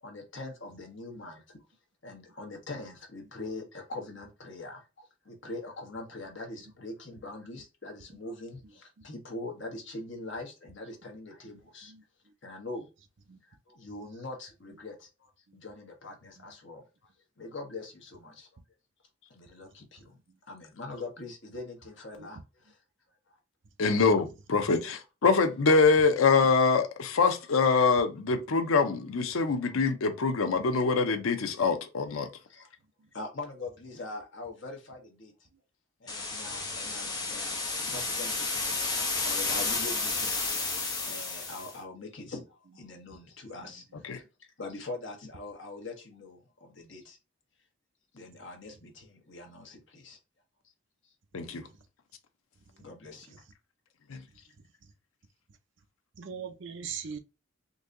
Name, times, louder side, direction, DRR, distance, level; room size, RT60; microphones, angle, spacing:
voice 1, 0.0-1.4 2.0-11.9 12.4-12.9 13.7-16.8 17.4-18.5 19.3-20.1 20.5-22.4 23.9-24.0 27.2-27.6 28.5-28.6 29.6-29.7 32.5-32.7 33.1-35.3 36.0-38.8 39.2-40.5 41.0-42.4 42.7-43.8 44.1-44.2 44.6-47.2 48.1-50.2 52.8-53.4, left 2 dB, 60° left, 1.1 m, -43 dB
voice 2, 23.8-32.3 44.0-44.2 51.3-51.7 54.1-54.2, left 4 dB, 80° left, 0.6 m, -24 dB
sound 1, 36.1-41.7, left 3 dB, 20° left, 0.8 m, -31 dB
voice 3, 56.2-57.2, right 7 dB, 60° right, 0.5 m, -41 dB
3.9 x 2.7 x 2.5 m
head